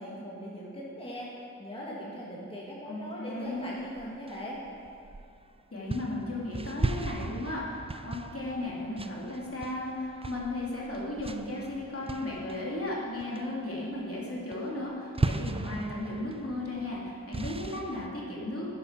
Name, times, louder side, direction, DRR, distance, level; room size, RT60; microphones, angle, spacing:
voice 1, 0.0-4.6, equal, 15° left, -6 dB, 2.2 m, -40 dB
voice 2, 2.9-3.7 5.7-18.7, left 1 dB, 45° left, -5 dB, 3.0 m, -35 dB
sound 1, 3.8-5.4 5.9-12.9 13.2-13.7 14.0-14.2 14.5-18.1, right 3 dB, 20° right, 0.5 m, -37 dB
11.0 x 10.0 x 6.0 m, 2.5 s
wide cardioid pair, 55°, 32 cm